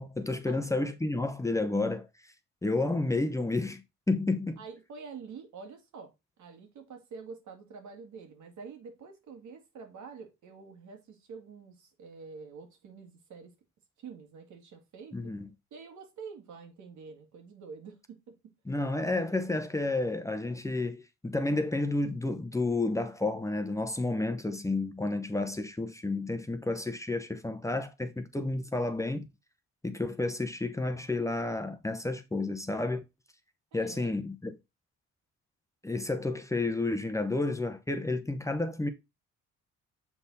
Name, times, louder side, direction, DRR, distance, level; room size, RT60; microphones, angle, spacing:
voice 1, 0.0-2.1 2.6-3.8 4.1-4.6 15.1-15.5 18.7-29.3 29.8-33.0 33.7-34.6 35.8-38.9, left 2 dB, 10° left, 0.8 m, -31 dB
voice 2, 4.6-6.1 6.4-13.5 14.0-15.2 15.7-18.4 33.7-34.2, right 5 dB, 75° right, 2.1 m, -47 dB
7.0 x 4.1 x 4.0 m
cardioid pair, 90°, 30 cm